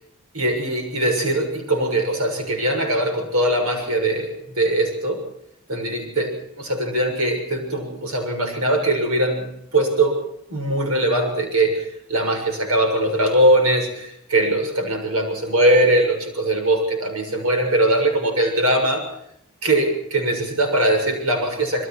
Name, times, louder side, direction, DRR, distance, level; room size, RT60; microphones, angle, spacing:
voice 1, 0.3-5.2 5.7-10.2 10.5-19.0 19.6-21.9, right 1 dB, 80° right, 5 dB, 7.0 m, -21 dB
27.5 x 22.0 x 4.6 m, 0.74 s
head